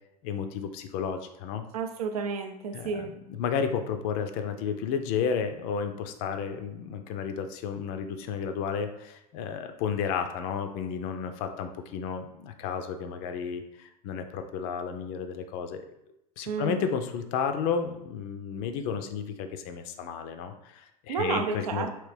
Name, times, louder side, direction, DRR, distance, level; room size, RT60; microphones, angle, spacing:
voice 1, 0.2-1.6 2.7-15.9 16.4-21.9, left 6 dB, 45° left, 7 dB, 0.4 m, -32 dB
voice 2, 1.7-3.2 16.5-16.8 21.1-21.9, right 5 dB, 70° right, 6 dB, 0.4 m, -31 dB
3.0 x 3.0 x 3.2 m, 0.84 s
figure-of-eight pair, 80°, 20 cm